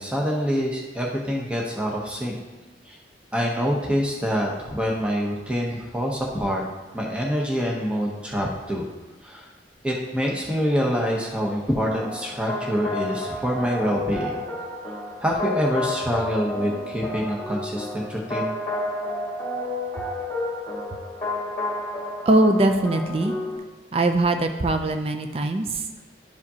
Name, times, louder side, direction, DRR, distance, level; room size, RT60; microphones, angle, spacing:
voice 1, 0.0-2.4 2.9-3.0 3.3-6.6 6.9-8.9 9.2-9.5 9.8-14.5 15.2-18.6, equal, 5° right, -2 dB, 0.8 m, -26 dB
sound 1, 11.9-23.6, left 2 dB, 10° left, 2.0 m, -31 dB
voice 2, 22.3-23.3 23.9-25.8, right 2 dB, 30° right, 6 dB, 0.4 m, -21 dB
12.0 x 4.9 x 2.8 m, 1.2 s
head